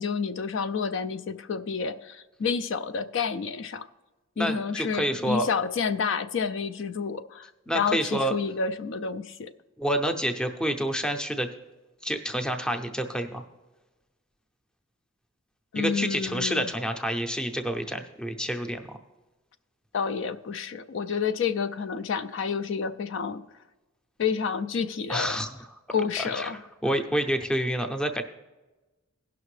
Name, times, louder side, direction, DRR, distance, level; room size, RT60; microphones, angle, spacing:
voice 1, 0.0-3.9 4.4-9.5 15.7-16.7 19.9-23.4 24.2-25.4 25.9-26.6, left 6 dB, 60° left, 10 dB, 0.4 m, -29 dB
voice 2, 4.4-5.5 7.7-8.3 9.8-11.5 12.0-13.4 15.7-19.0 25.1-25.5 26.2-28.2, equal, 5° left, 5 dB, 0.5 m, -28 dB
17.0 x 5.9 x 3.2 m, 1.2 s
head